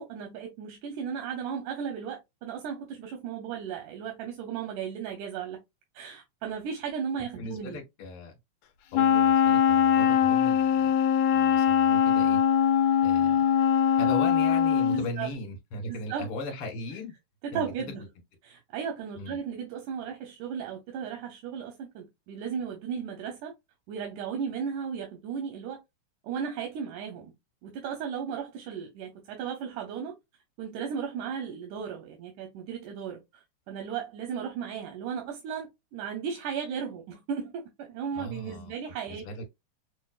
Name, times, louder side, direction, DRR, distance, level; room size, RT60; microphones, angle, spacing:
voice 1, 0.0-5.6 5.9-7.8 14.9-15.3 15.9-16.3 17.4-18.0 18.4-23.5 23.9-25.8 26.2-27.3 27.6-30.2 30.6-33.2 33.7-39.3, right 7 dB, 85° right, 2.3 m, -35 dB
voice 2, 7.4-8.3 8.9-10.9 11.3-12.4 13.0-13.4 14.0-17.1 17.5-17.7 19.2-19.4 38.2-38.8 39.1-39.4, left 2 dB, 55° left, 2.0 m, -38 dB
Wind instrument woodwind instrument, 8.9-15.1, left 8 dB, 80° left, 1.6 m, -22 dB
6.2 x 2.1 x 2.4 m
omnidirectional pair, 3.4 m